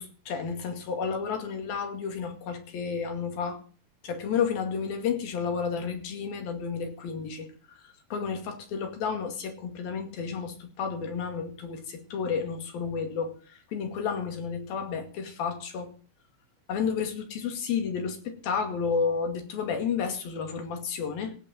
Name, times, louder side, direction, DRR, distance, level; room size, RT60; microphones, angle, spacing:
voice 1, 0.0-3.6 4.0-7.5 7.8-15.9 16.7-21.4, left 6 dB, 90° left, 4.1 m, -31 dB
17.0 x 5.9 x 9.3 m
omnidirectional pair, 4.1 m